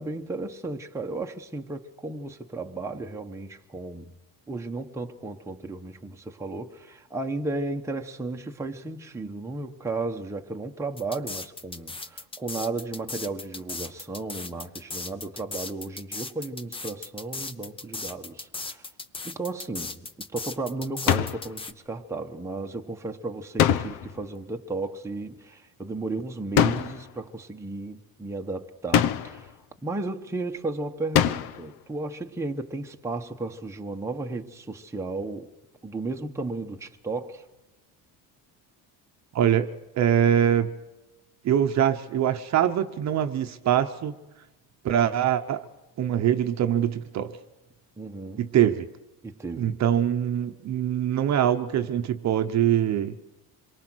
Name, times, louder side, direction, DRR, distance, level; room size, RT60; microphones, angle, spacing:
voice 1, 0.0-4.1 4.5-18.9 19.2-35.5 35.8-37.5 48.0-48.5 49.2-49.8, right 3 dB, 5° right, 1.1 m, -34 dB
sound 1, 11.0-21.7, left 3 dB, 15° left, 0.8 m, -37 dB
sound 2, 21.1-21.5 23.6-24.2 26.6-27.1 28.9-29.5 31.1-31.7, left 10 dB, 60° left, 1.1 m, -23 dB
voice 2, 39.3-39.7 40.0-40.7 41.4-44.1 44.8-45.7 46.0-47.4 48.4-48.9 49.5-53.1, right 10 dB, 40° right, 1.0 m, -23 dB
26.5 x 23.0 x 6.3 m
cardioid pair, 155°, 41 cm